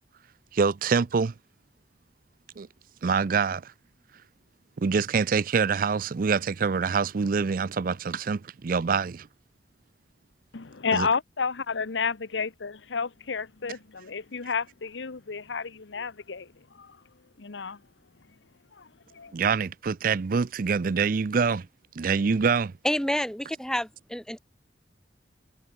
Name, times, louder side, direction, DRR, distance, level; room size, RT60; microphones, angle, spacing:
voice 1, 0.5-1.3 2.6-2.7 3.0-3.7 4.8-9.3 10.9-11.1 19.3-21.7 22.0-22.7, right 5 dB, 50° right, 0.4 m, -25 dB
voice 2, 10.5-16.5 16.7-17.0 17.4-17.8 18.8-19.3, left 5 dB, 90° left, 0.9 m, -31 dB
voice 3, 22.8-24.4, equal, 5° left, 1.6 m, -28 dB
head